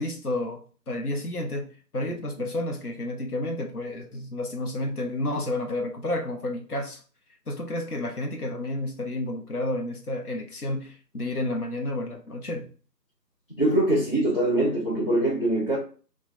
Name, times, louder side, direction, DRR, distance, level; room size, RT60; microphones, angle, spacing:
voice 1, 0.0-1.7 1.9-7.0 7.5-12.7, left 1 dB, 65° left, 0.9 m, -31 dB
voice 2, 13.6-15.8, right 1 dB, 35° left, 0.8 m, -23 dB
3.6 x 2.4 x 4.1 m
figure-of-eight pair, 165°, 50 cm